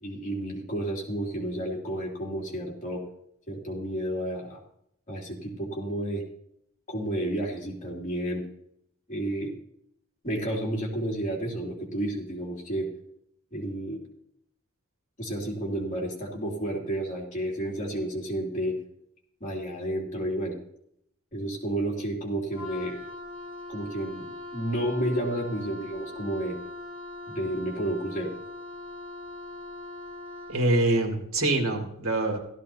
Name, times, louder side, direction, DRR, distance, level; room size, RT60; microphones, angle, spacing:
voice 1, 0.0-3.0 3.5-4.6 5.1-6.2 6.9-8.4 9.1-9.5 10.2-12.9 13.5-14.0 15.2-18.8 19.4-20.5 21.3-23.0 23.7-26.6 27.3-28.3, right 1 dB, 40° left, -2 dB, 2.8 m, -31 dB
Wind instrument woodwind instrument, 22.5-30.7, left 2 dB, 25° right, 1.4 m, -41 dB
voice 2, 30.5-32.4, right 2 dB, 85° right, 1 dB, 2.5 m, -25 dB
15.0 x 13.5 x 2.8 m, 0.73 s
head